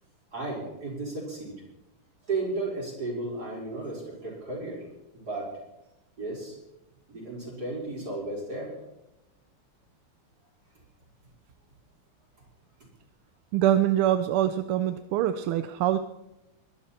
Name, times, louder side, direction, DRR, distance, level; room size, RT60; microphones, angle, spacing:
voice 1, 0.3-1.6 2.2-4.9 5.1-5.5 6.2-6.6 7.1-8.7, right 2 dB, 45° right, -3 dB, 5.6 m, -34 dB
voice 2, 13.5-16.0, right 11 dB, 80° right, 10 dB, 1.6 m, -24 dB
22.5 x 11.5 x 4.4 m, 0.94 s
omnidirectional pair, 2.4 m